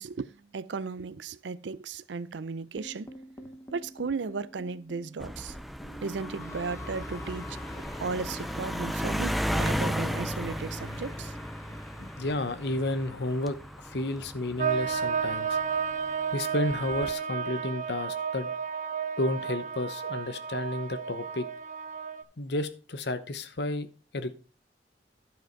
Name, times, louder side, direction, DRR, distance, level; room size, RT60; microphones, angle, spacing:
voice 1, 0.0-3.1 3.7-5.5 6.0-11.3, right 4 dB, 85° right, 0.5 m, -35 dB
sound 1, 2.8-15.0, left 1 dB, 15° left, 0.8 m, -46 dB
sound 2, 5.2-15.9 16.7-17.1, equal, ahead, 0.4 m, -35 dB
voice 2, 12.0-13.6 13.8-15.6 16.3-18.5 19.2-21.5 22.4-23.9 24.1-24.4, left 2 dB, 65° left, 0.9 m, -31 dB
sound 3, 14.6-22.2, right 6 dB, 45° right, 0.6 m, -32 dB
11.5 x 5.1 x 4.5 m
head